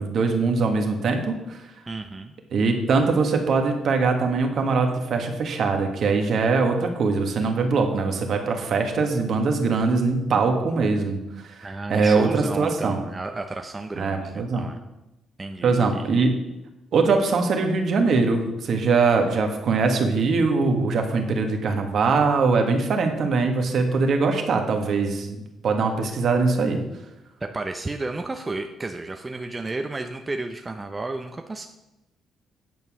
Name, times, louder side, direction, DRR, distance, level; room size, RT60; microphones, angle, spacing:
voice 1, 0.0-1.6 2.5-13.0 14.0-14.7 15.6-16.4 16.9-26.8, right 4 dB, 60° right, 4 dB, 1.5 m, -22 dB
voice 2, 1.9-2.3 11.6-14.8 15.4-16.1 27.4-31.7, right 2 dB, 20° right, 5 dB, 0.7 m, -32 dB
9.3 x 5.4 x 6.1 m, 0.96 s
cardioid pair, 90°, 0 cm